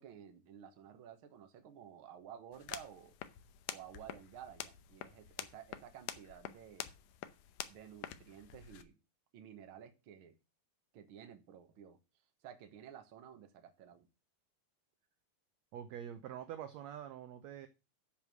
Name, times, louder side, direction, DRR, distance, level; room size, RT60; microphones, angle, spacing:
voice 1, 0.0-3.1 3.7-6.9 7.7-9.0 9.3-10.4 10.9-12.0 12.4-14.1, right 9 dB, 55° right, 1.5 m, -53 dB
sound 1, 2.5-8.8, left 12 dB, 75° left, 2.2 m, -48 dB
voice 2, 15.7-17.7, right 10 dB, 75° right, 1.6 m, -45 dB
10.5 x 4.8 x 6.1 m
omnidirectional pair, 3.9 m